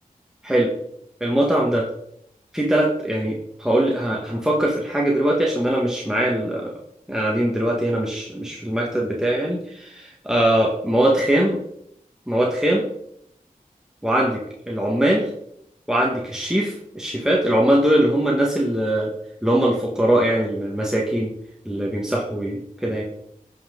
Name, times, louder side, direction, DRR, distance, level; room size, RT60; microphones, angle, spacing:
voice 1, 1.2-1.9 2.5-6.7 7.1-11.6 12.3-12.8 14.0-14.4 14.7-15.3 15.9-19.1 19.4-21.3 21.7-23.0, right 1 dB, 5° right, -3 dB, 1.7 m, -21 dB
15.0 x 5.7 x 4.0 m, 0.73 s
wide cardioid pair, 70°, 15 cm